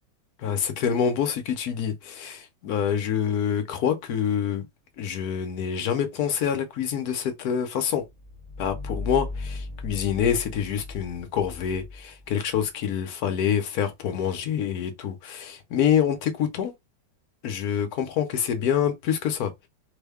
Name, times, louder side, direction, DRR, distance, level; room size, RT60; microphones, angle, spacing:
voice 1, 0.4-4.6 5.0-8.0 8.6-16.7 17.4-19.5, left 8 dB, 65° left, 1.0 m, -26 dB
sound 1, 8.1-12.6, left 3 dB, 75° right, 0.3 m, -37 dB
3.5 x 2.2 x 3.4 m
omnidirectional pair, 2.2 m